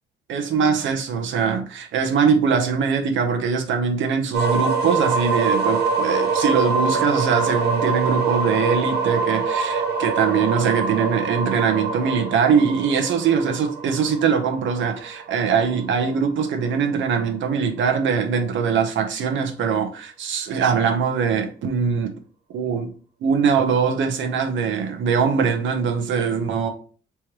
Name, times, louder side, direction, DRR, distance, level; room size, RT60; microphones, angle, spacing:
voice 1, 0.3-22.1 22.5-22.9 23.2-26.7, right 6 dB, 75° right, 0.9 m, -22 dB
sound 1, 4.3-16.1, right 4 dB, 55° right, 1.2 m, -24 dB
3.5 x 3.1 x 4.5 m
cardioid pair, 90°, 20 cm